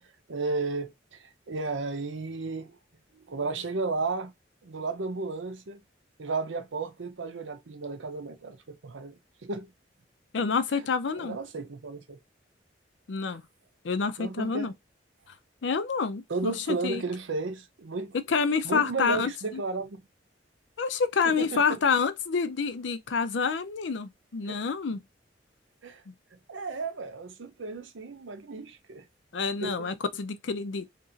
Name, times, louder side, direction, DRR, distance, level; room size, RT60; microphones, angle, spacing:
voice 1, 0.3-2.8 3.1-4.3 4.6-5.8 6.2-9.7 10.7-10.9 11.2-12.2 13.2-13.4 14.2-14.7 16.3-18.2 18.6-20.0 21.2-21.8 24.4-24.6 25.8-26.0 26.5-29.0 29.6-29.9, right 3 dB, 85° right, 0.7 m, -34 dB
voice 2, 10.3-11.4 13.1-13.4 13.8-14.7 15.6-17.0 18.3-19.6 20.8-25.0 26.1-26.2 29.3-30.9, left 5 dB, 75° left, 0.5 m, -28 dB
2.9 x 2.6 x 3.8 m
head